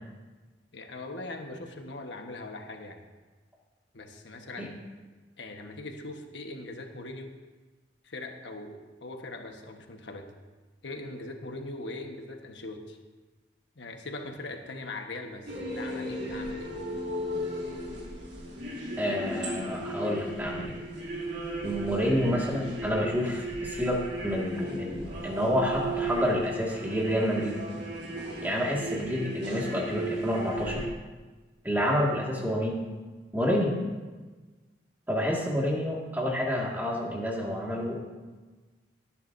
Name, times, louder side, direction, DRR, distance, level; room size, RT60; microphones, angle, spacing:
voice 1, 0.7-3.0 3.9-4.7 5.4-7.3 8.0-10.3 10.8-13.0 13.8-16.8, left 2 dB, 85° left, 4 dB, 1.3 m, -40 dB
sound 1, 15.5-30.9, right 1 dB, 85° right, 2.8 m, -35 dB
voice 2, 19.0-20.8 21.6-27.6 28.4-30.9 31.6-32.8 33.3-33.8 35.1-38.0, equal, 10° right, -2 dB, 1.9 m, -29 dB
18.5 x 9.8 x 2.7 m, 1.3 s
head